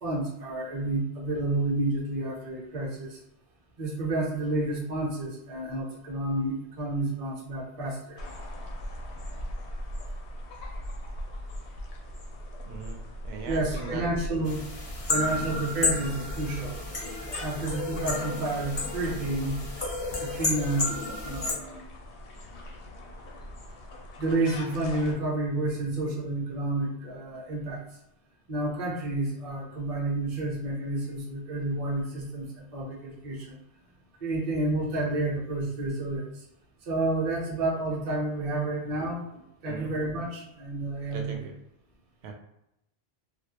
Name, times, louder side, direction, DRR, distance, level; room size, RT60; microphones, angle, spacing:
voice 1, 0.0-3.2 3.8-8.2 13.4-14.7 15.1-16.7 17.4-19.6 20.2-20.9 21.2-21.8 24.2-27.8 28.5-33.5 34.2-36.3 36.9-39.2 39.6-41.5, right 2 dB, 40° right, -3 dB, 0.6 m, -30 dB
sound 1, 8.2-25.1, equal, 90° left, 0.9 m, -40 dB
voice 2, 12.7-13.0 13.2-14.0 15.4-15.6 39.6-39.9 41.1-41.5 42.2-42.3, right 5 dB, 75° right, 2 dB, 0.8 m, -39 dB
sound 2, 14.4-21.5, left 2 dB, 40° left, 0.4 m, -32 dB
2.3 x 2.0 x 2.8 m, 0.83 s
omnidirectional pair, 1.1 m